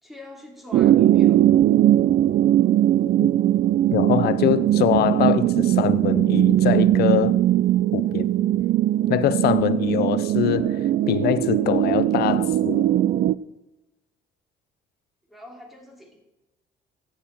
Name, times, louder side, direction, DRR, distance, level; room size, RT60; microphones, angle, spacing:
voice 1, 0.0-1.4 15.3-16.2, left 1 dB, ahead, 2.9 m, -44 dB
sound 1, 0.7-13.4, right 12 dB, 55° right, 0.4 m, -20 dB
voice 2, 3.9-7.4 7.9-8.3 9.1-12.9, left 12 dB, 70° left, 0.6 m, -23 dB
13.5 x 9.0 x 4.5 m
cardioid pair, 110°, 17 cm